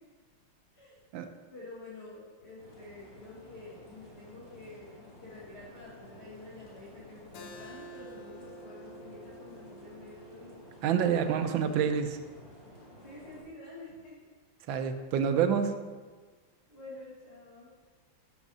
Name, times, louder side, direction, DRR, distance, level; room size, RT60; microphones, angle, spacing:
voice 1, 1.5-10.6 13.0-14.2 16.7-17.7, left 2 dB, 35° left, -10 dB, 1.9 m, -48 dB
sound 1, 2.6-13.4, left 1 dB, 15° left, 2.2 m, -53 dB
Keyboard (musical), 7.3-12.5, right 1 dB, 65° left, 1.0 m, -51 dB
voice 2, 10.8-12.2 14.7-15.7, right 7 dB, 80° right, 8 dB, 1.3 m, -27 dB
5.4 x 5.4 x 6.1 m, 1.4 s
omnidirectional pair, 2.2 m